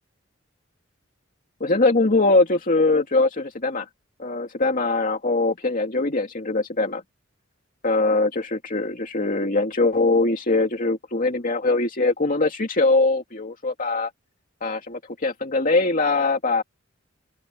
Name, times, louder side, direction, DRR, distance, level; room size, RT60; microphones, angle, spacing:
voice 1, 1.6-3.9 4.2-7.0 7.8-14.1 14.6-16.6, left 3 dB, 45° left, 2.5 m, -22 dB
open air
head